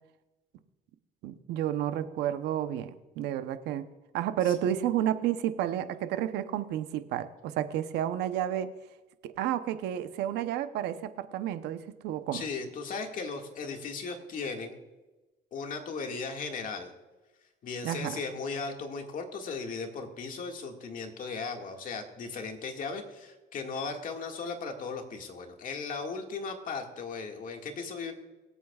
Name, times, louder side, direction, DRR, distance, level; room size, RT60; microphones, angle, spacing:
voice 1, 1.2-3.9 4.1-8.7 9.2-12.5 17.8-18.2, right 11 dB, 85° right, 10 dB, 0.8 m, -31 dB
voice 2, 12.3-14.8 15.5-16.9 17.6-28.1, left 4 dB, 55° left, 3 dB, 1.9 m, -37 dB
24.0 x 8.4 x 2.4 m, 1.1 s
cardioid pair, 110°, 17 cm